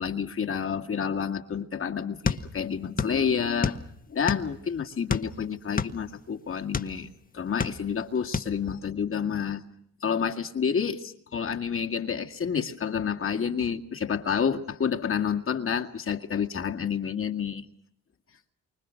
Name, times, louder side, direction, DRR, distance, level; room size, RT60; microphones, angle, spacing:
voice 1, 0.0-3.8 4.1-7.1 7.3-9.6 10.0-17.7, left 7 dB, 45° left, 4 dB, 2.1 m, -29 dB
sound 1, 2.2-3.2 3.4-4.6 5.1-7.0 7.4-8.0 8.3-8.5, left 5 dB, 30° left, 1.7 m, -29 dB
28.5 x 25.0 x 6.4 m, 0.68 s
cardioid pair, 90°, 30 cm